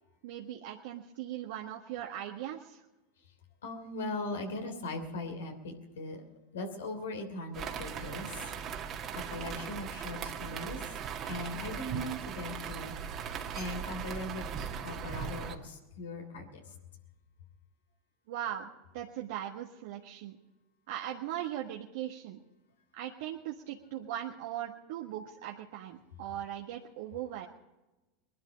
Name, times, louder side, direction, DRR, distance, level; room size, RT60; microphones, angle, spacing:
voice 1, 0.2-2.8 18.3-20.4 20.9-22.4 22.9-27.5, right 11 dB, 70° right, 0 dB, 1.4 m, -39 dB
voice 2, 3.6-6.2 6.5-8.3 8.9-10.8 11.3-12.9 13.5-16.5, left 2 dB, 85° left, 5 dB, 3.0 m, -39 dB
sound 1, 7.5-15.5, right 7 dB, 40° right, 1.8 m, -39 dB
20.5 x 12.0 x 5.1 m, 1.0 s
hypercardioid pair, 100°, 0 cm